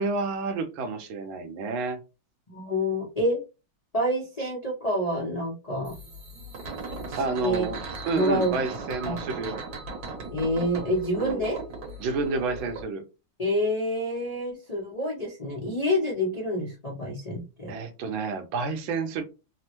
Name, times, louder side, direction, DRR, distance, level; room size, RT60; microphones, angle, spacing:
voice 1, 0.0-2.0 7.2-9.6 11.2-11.5 12.0-13.0 17.7-19.2, right 4 dB, 80° right, 7 dB, 1.4 m, -30 dB
voice 2, 2.5-3.4 3.9-5.9 7.1-7.7 8.1-8.5 9.0-9.2 10.3-11.6 13.4-17.7, equal, 80° left, -5 dB, 0.3 m, -27 dB
sound 1, 5.8-12.8, right 3 dB, 55° right, 1.2 m, -38 dB
3.5 x 2.1 x 2.9 m, 0.29 s
omnidirectional pair, 2.2 m